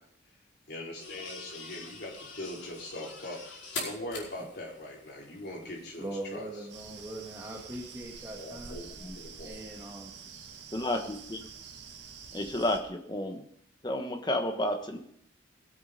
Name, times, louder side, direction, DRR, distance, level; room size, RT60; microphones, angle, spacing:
voice 1, 0.7-6.5 8.4-9.6, left 1 dB, 55° left, -2 dB, 4.5 m, -41 dB
sound 1, 1.0-8.8, left 3 dB, 70° left, 5.0 m, -45 dB
voice 2, 6.0-8.8 9.4-10.1, right 1 dB, 15° right, -2 dB, 2.1 m, -41 dB
sound 2, 6.7-12.8, right 5 dB, 65° right, 1.8 m, -47 dB
voice 3, 10.7-11.4 12.3-13.5 13.8-15.0, left 1 dB, 20° left, 6 dB, 1.3 m, -31 dB
20.0 x 8.5 x 5.2 m, 0.69 s
head